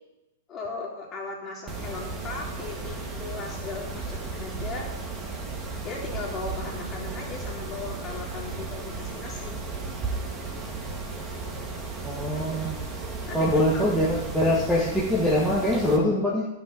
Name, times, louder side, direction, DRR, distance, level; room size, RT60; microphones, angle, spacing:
voice 1, 0.5-4.9 5.8-9.6 13.3-13.8, left 4 dB, 25° left, -2 dB, 3.3 m, -37 dB
Mechanisms, 1.7-16.0, right 3 dB, 15° right, 1.8 m, -35 dB
voice 2, 12.0-12.8 13.3-16.5, left 1 dB, ahead, -7 dB, 1.7 m, -23 dB
11.0 x 6.1 x 7.2 m, 0.93 s
hypercardioid pair, 135°, 0 cm